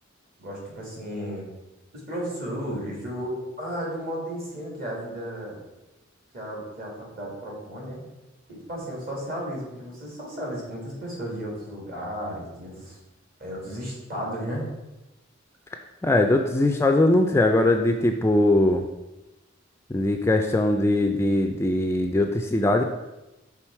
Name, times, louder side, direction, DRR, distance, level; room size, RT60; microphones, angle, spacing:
voice 1, 0.4-1.4 1.9-5.6 6.3-8.0 8.5-13.0 13.4-14.7, equal, 50° right, -3 dB, 2.1 m, -34 dB
voice 2, 16.0-18.8 19.9-22.8, left 1 dB, 15° left, 4 dB, 0.3 m, -21 dB
6.2 x 3.6 x 4.4 m, 0.99 s
head